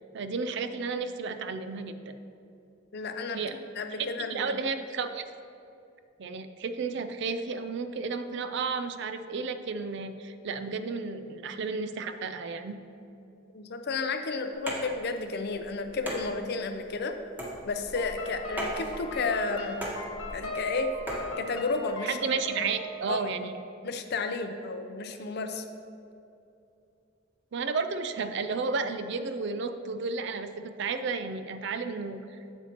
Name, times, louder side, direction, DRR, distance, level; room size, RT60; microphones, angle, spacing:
voice 1, 0.1-2.1 3.3-3.6 4.3-5.2 6.2-12.8 22.0-23.6 27.5-32.2, right 4 dB, 60° right, 10 dB, 0.4 m, -32 dB
voice 2, 2.9-3.4 3.8-4.5 13.5-17.2 17.7-19.9 20.3-20.9 21.4-22.2 22.5-22.7 23.1-23.3 23.8-25.7, left 4 dB, 55° left, 7 dB, 0.5 m, -32 dB
sound 1, 14.5-21.3, equal, 10° right, 1.2 m, -39 dB
sound 2, 17.9-23.0, left 1 dB, 85° left, 1.1 m, -38 dB
8.0 x 7.2 x 2.9 m, 2.7 s
head